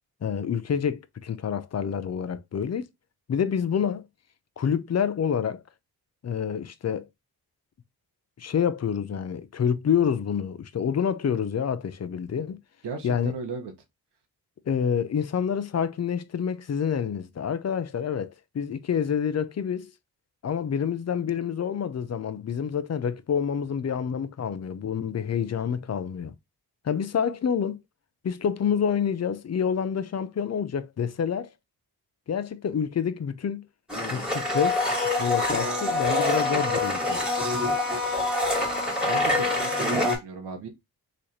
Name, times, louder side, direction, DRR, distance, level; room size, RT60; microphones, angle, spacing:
voice 1, 0.2-2.8 3.3-4.0 4.6-5.6 6.2-7.0 8.4-12.6 13.0-13.4 14.7-19.9 20.4-26.4 26.8-27.8 28.2-31.5 32.3-33.6 34.1-34.8 35.2-37.2, left 7 dB, 40° left, 0.5 m, -27 dB
voice 2, 12.8-13.7 39.1-40.7, right 4 dB, 90° right, 1.0 m, -36 dB
Domestic sounds home sounds, 33.9-40.2, left 2 dB, ahead, 1.6 m, -25 dB
3.2 x 2.4 x 4.0 m
cardioid pair, 50°, 40 cm